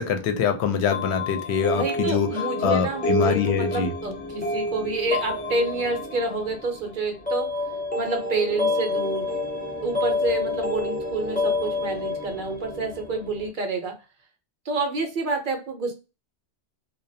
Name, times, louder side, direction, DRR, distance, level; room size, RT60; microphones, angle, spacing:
voice 1, 0.0-2.3 2.6-3.9, left 6 dB, 75° left, 0.8 m, -24 dB
sound 1, 0.9-13.5, left 2 dB, 10° left, 0.6 m, -29 dB
voice 2, 1.7-7.5 8.0-9.3 9.8-13.9 14.7-15.9, right 3 dB, 55° right, 0.7 m, -28 dB
2.3 x 2.2 x 2.6 m
omnidirectional pair, 1.1 m